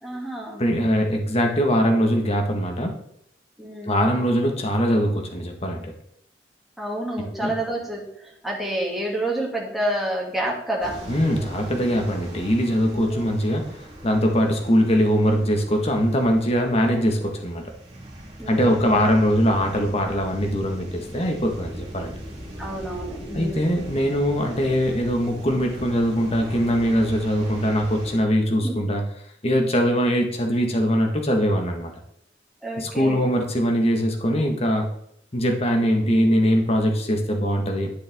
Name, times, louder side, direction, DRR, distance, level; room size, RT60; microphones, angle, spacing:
voice 1, 0.0-0.6 3.6-4.0 6.8-11.0 12.9-13.6 18.4-19.0 22.6-23.9 28.6-28.7 32.6-33.3 36.0-36.4, right 1 dB, ahead, -4 dB, 2.5 m, -29 dB
voice 2, 0.6-3.0 3.8-5.9 7.2-7.5 11.1-17.6 18.5-22.1 23.3-29.0 29.4-31.9 32.8-34.9 35.3-37.9, equal, 35° left, 3 dB, 1.6 m, -22 dB
sound 1, 10.8-28.2, right 1 dB, 40° right, 3.7 m, -40 dB
11.5 x 6.6 x 3.6 m, 0.72 s
head